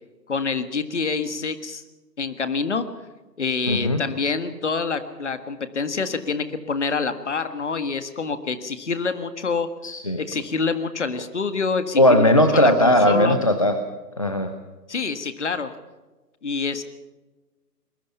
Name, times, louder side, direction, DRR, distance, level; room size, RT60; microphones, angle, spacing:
voice 1, 0.3-1.8 2.2-2.8 3.4-9.7 10.2-13.4 14.9-15.7 16.4-16.8, left 4 dB, 45° left, 11 dB, 1.7 m, -26 dB
voice 2, 3.7-4.0 9.8-10.2 12.0-13.7 14.2-14.5, left 1 dB, 20° left, 8 dB, 0.7 m, -18 dB
22.5 x 21.0 x 5.7 m, 1.2 s
figure-of-eight pair, 150°, 49 cm